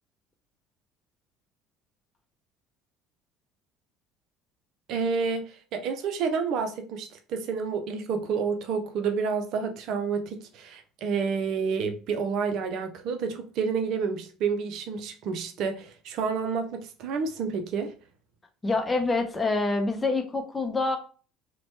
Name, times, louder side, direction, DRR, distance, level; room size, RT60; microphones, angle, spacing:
voice 1, 4.9-17.9, right 5 dB, 55° right, 0.5 m, -29 dB
voice 2, 18.6-21.0, left 3 dB, 20° left, 0.6 m, -26 dB
3.0 x 2.2 x 2.9 m
figure-of-eight pair, 60°, 0 cm